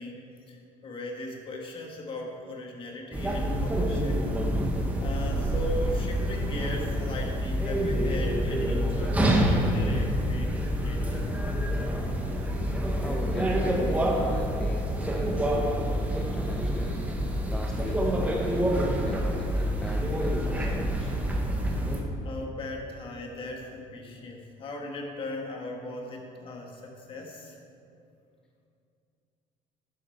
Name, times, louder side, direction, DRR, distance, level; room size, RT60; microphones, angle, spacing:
voice 1, 0.0-4.3 5.0-11.3 21.7-21.8 22.2-27.6, left 2 dB, 40° left, 1 dB, 1.6 m, -38 dB
sound 1, 3.1-22.0, equal, 10° right, 1.2 m, -27 dB
voice 2, 13.0-17.0 17.5-21.1, equal, 5° left, 1 dB, 0.5 m, -40 dB
11.0 x 7.4 x 4.6 m, 2.5 s
cardioid pair, 135°, 14 cm